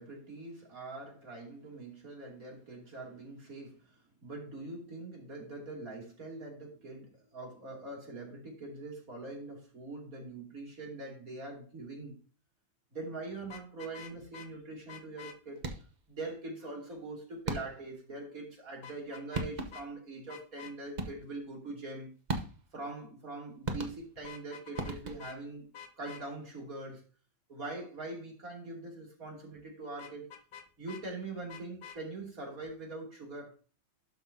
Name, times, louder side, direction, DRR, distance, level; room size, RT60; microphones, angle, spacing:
voice 1, 0.0-12.2 12.9-15.6 16.1-22.1 22.7-25.6 26.0-27.0 27.5-30.3 30.8-33.5, right 2 dB, 50° right, 3.2 m, -43 dB
Vehicle horn car horn honking, 13.4-14.5 14.9-15.4 18.8-19.5 19.7-19.9 20.3-20.7 24.2-24.9 25.2-25.4 25.7-26.2 30.0-31.0 31.5-32.0, left 8 dB, 75° left, 1.6 m, -48 dB
sound 1, 15.6-16.1 17.5-18.0 19.0-19.1 19.3-20.0 21.0-21.4 22.3-22.8 23.6-24.3 24.8-25.5, right 2 dB, 35° right, 0.7 m, -38 dB
12.0 x 5.8 x 2.8 m
omnidirectional pair, 1.9 m